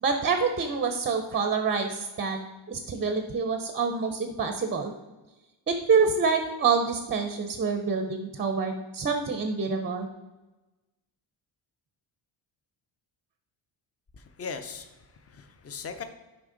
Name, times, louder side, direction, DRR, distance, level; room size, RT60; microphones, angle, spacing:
voice 1, 0.0-2.4 2.7-4.9 5.7-10.1, right 5 dB, 25° right, 6 dB, 0.5 m, -26 dB
voice 2, 14.2-16.0, left 5 dB, 30° left, 9 dB, 0.6 m, -39 dB
6.3 x 5.0 x 3.8 m, 1.1 s
cardioid pair, 125°, 48 cm